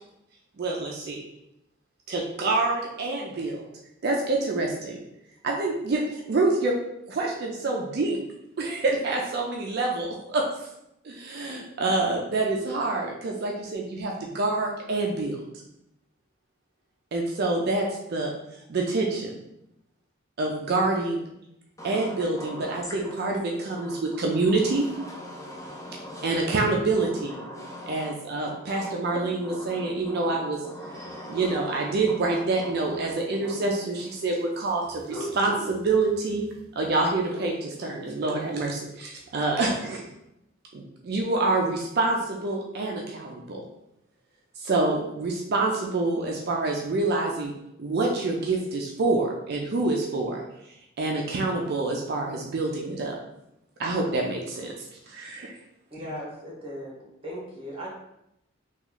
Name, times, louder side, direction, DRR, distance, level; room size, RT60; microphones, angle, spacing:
voice 1, 0.6-1.2 2.1-3.6 4.0-5.0 5.4-6.7 7.1-8.2 8.6-10.5 11.0-15.4 17.1-18.3 18.7-19.3 20.4-21.3 21.8-24.9 26.2-27.4 27.9-30.6 31.3-36.5 36.8-40.0 40.7-43.6 44.6-47.5 47.8-50.4 51.0-53.2 53.8-54.7 55.1-55.5, right 3 dB, 50° right, 0 dB, 0.4 m, -27 dB
voice 2, 21.8-23.1 23.7-24.0 25.1-26.4 27.1-28.1 28.5-30.4 30.6-31.7 32.1-32.2 32.6-32.7 33.0-33.6, equal, 15° left, -2 dB, 0.4 m, -40 dB
sound 1, 30.3-30.5 30.9-32.9 34.8-37.5 39.2-40.1, right 1 dB, 5° right, 1.2 m, -41 dB
voice 3, 55.9-56.9 57.2-57.9, equal, 25° right, -3 dB, 1.0 m, -37 dB
3.0 x 2.3 x 3.8 m, 0.83 s
head